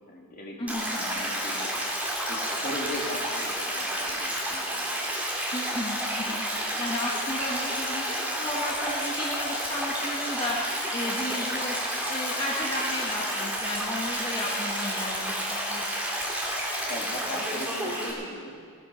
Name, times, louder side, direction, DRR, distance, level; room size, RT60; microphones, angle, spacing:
voice 1, 0.1-1.8 2.3-4.9 16.9-18.6, equal, 40° left, -2 dB, 2.6 m, -39 dB
voice 2, 0.6-1.0 5.5-6.4 6.8-10.6 10.9-15.8, left 1 dB, 25° left, -6 dB, 1.5 m, -33 dB
Stream, 0.7-18.1, equal, 5° right, 2.7 m, -30 dB
19.0 x 10.0 x 6.2 m, 2.1 s
head